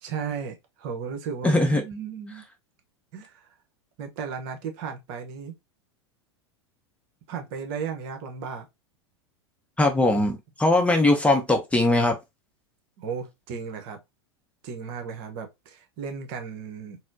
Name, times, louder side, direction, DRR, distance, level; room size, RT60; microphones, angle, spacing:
voice 1, 0.0-2.4 3.1-3.5 4.0-5.5 7.3-8.7 13.0-14.0 14.6-17.0, right 6 dB, 55° right, 0.8 m, -35 dB
voice 2, 1.4-1.8 9.8-12.2, left 2 dB, 10° left, 0.6 m, -20 dB
4.0 x 2.0 x 2.6 m
hypercardioid pair, 90°, 15 cm